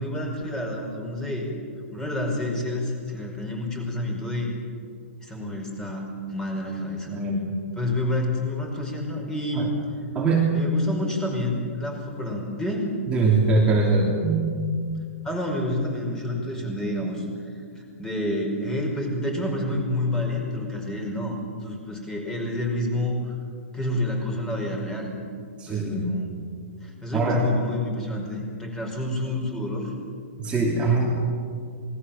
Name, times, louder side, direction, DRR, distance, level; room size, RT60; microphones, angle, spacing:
voice 1, 0.0-1.5 1.9-4.5 5.2-7.2 7.8-9.7 10.5-12.9 15.2-17.3 17.8-23.3 23.7-25.1 25.7-26.3 26.8-29.9 30.8-30.9, left 1 dB, 10° left, 1 dB, 5.3 m, -29 dB
voice 2, 7.1-7.5 9.5-9.7 10.1-10.5 13.1-14.5 25.6-26.1 27.1-27.4 30.4-31.2, right 3 dB, 15° right, -3 dB, 3.1 m, -22 dB
28.0 x 20.5 x 7.4 m, 2.2 s
hypercardioid pair, 145°, 7 cm